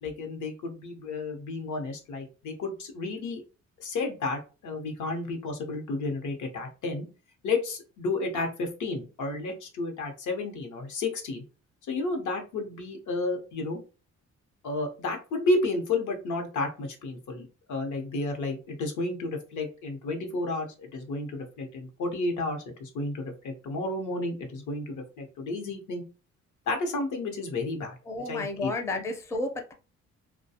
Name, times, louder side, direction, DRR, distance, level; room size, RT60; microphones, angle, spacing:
voice 1, 0.0-3.4 3.8-7.1 7.4-11.4 11.9-13.8 14.6-26.0 26.7-28.0 28.3-28.7, left 2 dB, 75° left, 0.8 m, -32 dB
voice 2, 28.1-29.7, left 2 dB, 10° left, 0.4 m, -32 dB
2.3 x 2.2 x 2.7 m
cardioid pair, 90°, 30 cm